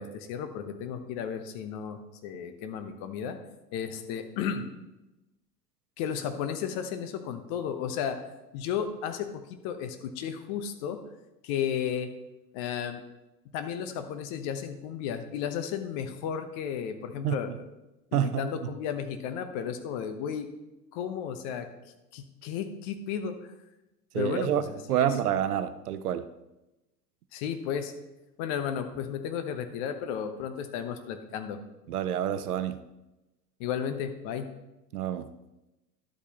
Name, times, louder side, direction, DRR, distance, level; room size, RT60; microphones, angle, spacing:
voice 1, 0.0-3.4 3.7-4.6 6.0-8.2 8.5-11.0 11.4-12.1 12.5-13.0 13.5-17.5 18.1-20.5 20.9-21.7 22.1-23.3 24.1-25.1 27.3-27.9 28.4-31.6 33.6-34.5, left 8 dB, 40° left, 1.1 m, -33 dB
voice 2, 18.1-18.7 24.1-26.3 31.9-32.8 34.9-35.3, right 10 dB, 65° right, 0.7 m, -28 dB
11.0 x 8.1 x 3.0 m
figure-of-eight pair, 85°, 50 cm